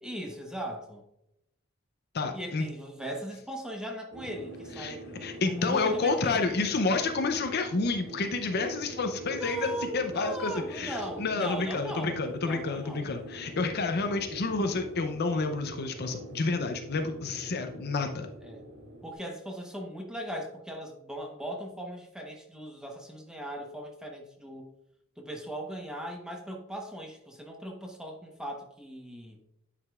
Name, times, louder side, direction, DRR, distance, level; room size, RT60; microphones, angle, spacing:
voice 1, 0.0-1.0 2.3-5.1 5.4-6.6 9.3-13.1 18.4-18.7 19.0-24.7 25.2-29.4, right 1 dB, 5° right, 1 dB, 1.0 m, -38 dB
voice 2, 2.1-2.7 4.8-5.0 5.2-18.3, left 3 dB, 50° left, 6 dB, 0.6 m, -29 dB
sound 1, 4.1-19.1, equal, 90° right, 2.6 m, -44 dB
9.5 x 5.0 x 2.4 m, 0.80 s
head